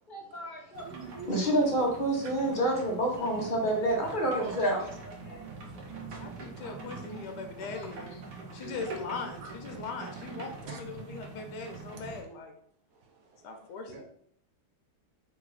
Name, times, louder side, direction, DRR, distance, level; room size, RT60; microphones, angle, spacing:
voice 1, 0.1-0.9 1.3-5.4 6.6-6.7, right 1 dB, 35° left, -1 dB, 0.9 m, -29 dB
sound 1, 0.7-12.2, right 4 dB, 85° right, 1.5 m, -44 dB
voice 2, 0.8-1.9 2.2-2.3 4.2-4.6 5.3-5.6 6.1-6.2 7.6-7.7 8.5-8.7 9.4-9.5 10.7-10.8 13.0-13.5 13.9-14.0, right 4 dB, 65° right, 3 dB, 1.1 m, -45 dB
voice 3, 6.2-12.5 13.4-14.0, left 4 dB, 85° left, 5 dB, 1.3 m, -40 dB
3.9 x 2.5 x 4.7 m, 0.64 s
omnidirectional pair, 1.8 m